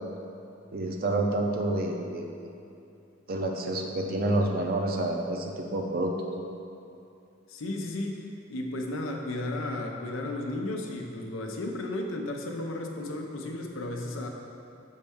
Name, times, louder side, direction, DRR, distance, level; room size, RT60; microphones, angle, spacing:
voice 1, 0.7-2.5 3.3-6.1, right 2 dB, 50° right, 2 dB, 0.5 m, -28 dB
voice 2, 7.5-8.2 8.5-14.3, left 1 dB, 75° left, 2 dB, 0.6 m, -34 dB
6.3 x 4.2 x 3.6 m, 2.6 s
head